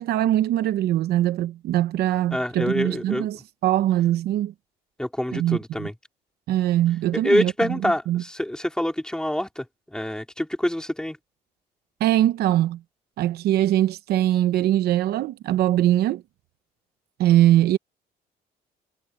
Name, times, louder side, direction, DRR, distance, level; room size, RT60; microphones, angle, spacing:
voice 1, 0.0-4.5 5.3-5.9 6.5-8.2 12.0-12.8 13.2-16.2 17.2-17.8, right 13 dB, 70° right, 0.9 m, -22 dB
voice 2, 2.3-3.3 5.0-5.9 7.1-11.2, left 1 dB, 5° left, 4.4 m, -26 dB
cardioid pair, 110°, 17 cm